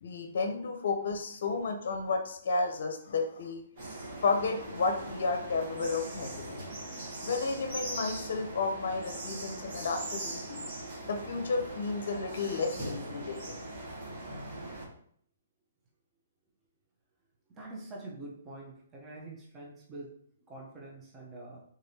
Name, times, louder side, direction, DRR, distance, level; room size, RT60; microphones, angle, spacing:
voice 1, 0.0-3.6 4.2-6.7 7.2-10.6 11.0-13.6, left 4 dB, 65° left, 5 dB, 0.6 m, -32 dB
sound 1, 3.8-14.9, right 1 dB, 45° right, 1.6 m, -41 dB
voice 2, 17.5-20.1 20.5-21.6, right 2 dB, 20° right, -3 dB, 0.8 m, -45 dB
3.8 x 3.3 x 2.7 m, 0.64 s
hypercardioid pair, 150°, 0 cm